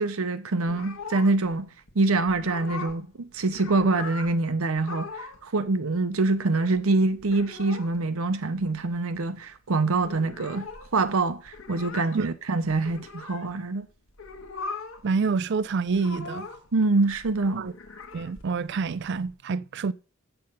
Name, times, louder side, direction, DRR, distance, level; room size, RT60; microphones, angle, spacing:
voice 1, 0.0-10.7 10.9-13.9 16.7-17.7, right 3 dB, 80° right, 0.8 m, -25 dB
sound 1, 0.6-1.6 1.9-2.0 2.3-3.1 3.4-4.3 4.8-5.4 5.7-5.8 6.0-6.8 7.2-8.0 8.3-8.4 8.6-9.2 9.5-9.6 9.8-13.5 14.1-15.1 15.3-16.7 17.1-19.3, left 4 dB, 70° left, 1.3 m, -40 dB
voice 2, 15.0-16.5 17.6-17.7 18.1-19.9, right 4 dB, 55° right, 0.4 m, -27 dB
7.7 x 6.7 x 5.4 m
head